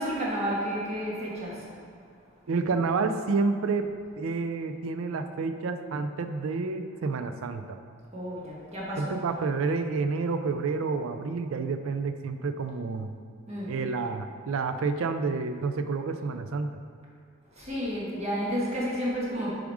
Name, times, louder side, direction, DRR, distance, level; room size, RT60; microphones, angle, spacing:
voice 1, 0.0-1.7 8.1-9.1 13.5-13.8 17.5-19.5, equal, 30° right, -6 dB, 1.6 m, -31 dB
voice 2, 2.5-7.8 9.0-13.1 13.7-16.8, right 4 dB, 75° right, 8 dB, 0.4 m, -29 dB
7.1 x 5.0 x 4.8 m, 2.2 s
head